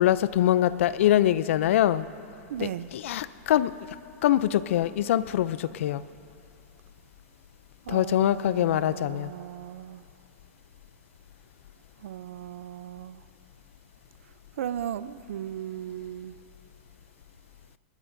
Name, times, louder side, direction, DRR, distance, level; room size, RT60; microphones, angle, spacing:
voice 1, 0.0-2.1 2.6-3.7 4.2-6.0 7.9-9.3, left 12 dB, 70° left, 16 dB, 0.5 m, -23 dB
voice 2, 2.5-2.9 7.8-10.0 12.0-13.2 14.6-16.4, right 10 dB, 80° right, 15 dB, 0.5 m, -36 dB
21.0 x 19.0 x 2.7 m, 2.6 s
supercardioid pair, 155°, 7 cm